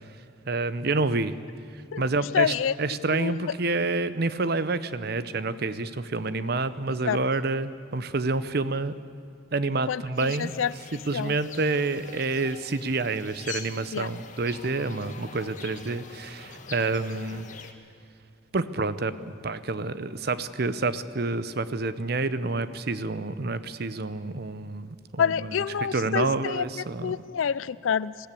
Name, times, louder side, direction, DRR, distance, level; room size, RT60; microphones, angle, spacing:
voice 1, 0.5-1.4 1.7-8.9 9.5-10.5 10.9-17.5 18.5-25.6 25.9-27.2, right 3 dB, 55° right, 14 dB, 0.7 m, -28 dB
voice 2, 2.3-2.7 3.1-3.5 7.0-7.2 9.9-10.7 11.1-11.3 13.9-14.1 25.2-28.3, left 7 dB, 90° left, 18 dB, 0.4 m, -27 dB
sound 1, 10.2-17.7, left 5 dB, 40° left, 1.4 m, -44 dB
20.5 x 15.0 x 8.5 m, 2.3 s
head